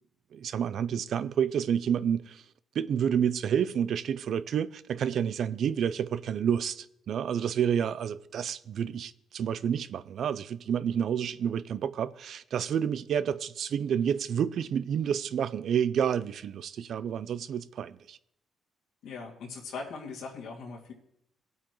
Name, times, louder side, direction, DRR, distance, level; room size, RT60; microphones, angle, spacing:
voice 1, 0.3-2.4 2.7-18.2, right 8 dB, 65° right, 0.4 m, -29 dB
voice 2, 19.0-20.9, left 4 dB, 80° left, 2.3 m, -40 dB
16.5 x 8.6 x 3.1 m
cardioid pair, 90°, 0 cm